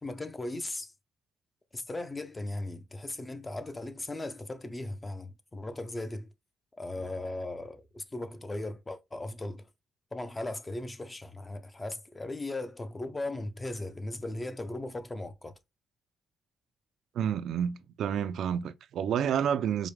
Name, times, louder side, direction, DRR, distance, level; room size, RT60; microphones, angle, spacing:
voice 1, 0.0-0.9 1.7-6.3 6.8-9.7 10.1-15.5, left 2 dB, 20° left, 0.5 m, -37 dB
voice 2, 17.1-19.9, right 8 dB, 70° right, 0.3 m, -29 dB
4.9 x 2.1 x 3.1 m
cardioid pair, 90°, 0 cm